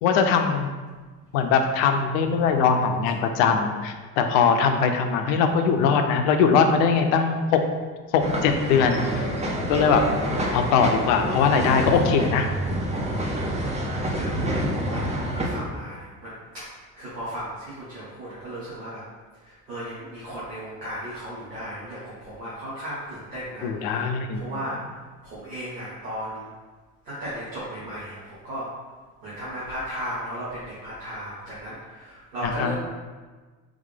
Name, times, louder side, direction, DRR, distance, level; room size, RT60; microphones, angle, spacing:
voice 1, 0.0-0.7 1.3-7.4 8.1-9.0 9.7-10.0 10.5-12.5 23.6-24.4 32.4-32.8, left 6 dB, 60° left, 6 dB, 0.6 m, -21 dB
sound 1, 8.2-15.6, right 1 dB, 15° right, 0.6 m, -27 dB
voice 2, 13.8-16.3 17.0-19.0 19.4-24.0 24.3-24.8 25.2-26.5 27.0-28.7 29.2-32.8, equal, 85° right, -11 dB, 1.2 m, -36 dB
3.7 x 3.2 x 3.5 m, 1.4 s
figure-of-eight pair, 60°, 49 cm